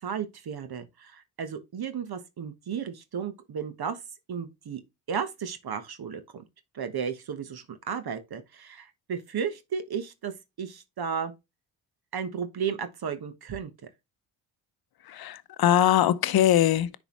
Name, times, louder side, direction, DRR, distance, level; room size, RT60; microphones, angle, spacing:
voice 1, 0.0-4.0 4.3-4.8 5.1-6.4 6.7-11.3 12.1-13.7, right 7 dB, 55° right, 1.3 m, -34 dB
voice 2, 15.1-17.0, left 11 dB, 50° left, 0.8 m, -22 dB
9.9 x 4.1 x 3.1 m
supercardioid pair, 55°, 46 cm